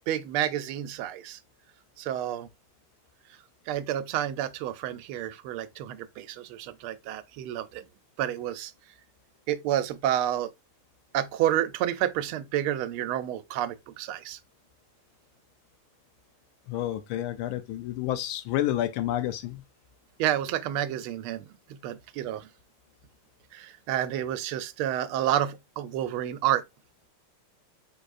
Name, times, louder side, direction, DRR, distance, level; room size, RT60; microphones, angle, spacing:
voice 1, 0.1-1.4 2.0-2.5 3.7-7.8 8.2-8.7 9.5-10.5 11.1-14.4 20.2-22.5 23.5-26.6, right 11 dB, 90° right, 1.5 m, -29 dB
voice 2, 16.7-19.6, left 13 dB, 80° left, 1.4 m, -29 dB
5.3 x 3.8 x 2.4 m
omnidirectional pair, 2.3 m